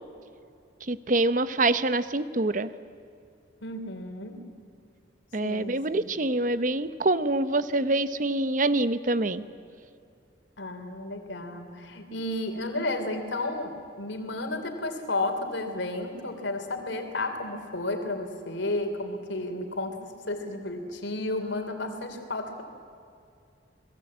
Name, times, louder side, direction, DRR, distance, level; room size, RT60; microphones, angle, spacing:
voice 1, 0.9-2.7 5.3-9.4, right 2 dB, 40° right, 13 dB, 0.9 m, -25 dB
voice 2, 3.6-4.4 5.4-6.1 10.6-22.6, left 2 dB, 75° left, 6 dB, 3.4 m, -32 dB
29.0 x 21.0 x 8.7 m, 2.5 s
head